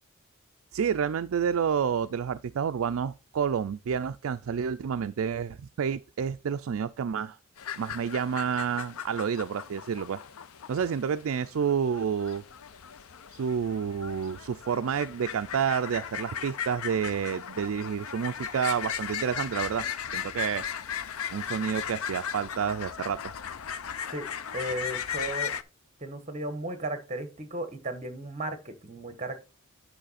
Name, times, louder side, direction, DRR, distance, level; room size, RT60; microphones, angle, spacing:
voice 1, 0.7-7.4 7.8-10.2 10.7-12.4 13.3-19.9 20.1-20.7 21.3-23.2, right 7 dB, 65° right, 0.4 m, -29 dB
sound 1, 7.6-25.6, left 8 dB, 70° left, 0.5 m, -37 dB
voice 2, 24.1-25.5 26.0-29.4, right 1 dB, 30° right, 1.3 m, -35 dB
9.0 x 5.6 x 4.1 m
head